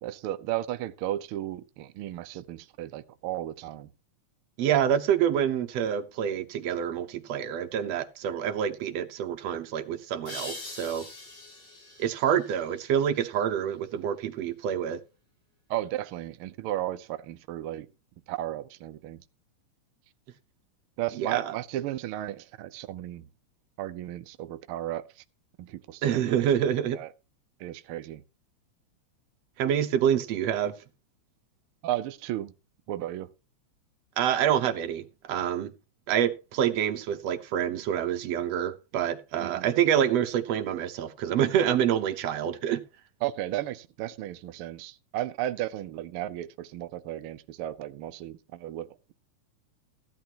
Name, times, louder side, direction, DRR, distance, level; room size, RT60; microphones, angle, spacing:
voice 1, 0.0-3.9 15.7-17.9 18.3-19.2 21.0-23.2 23.8-25.2 25.6-26.2 26.9-27.1 27.6-28.2 31.8-32.5 32.9-33.3 39.4-39.7 43.2-49.1, right 13 dB, 85° right, 1.2 m, -34 dB
voice 2, 4.6-11.1 12.0-15.0 21.2-21.5 26.0-27.0 29.6-30.7 34.2-35.7 36.1-42.8, right 9 dB, 65° right, 2.0 m, -27 dB
sound 1, 10.3-13.7, left 2 dB, 50° left, 4.6 m, -44 dB
15.5 x 11.0 x 2.9 m
omnidirectional pair, 3.4 m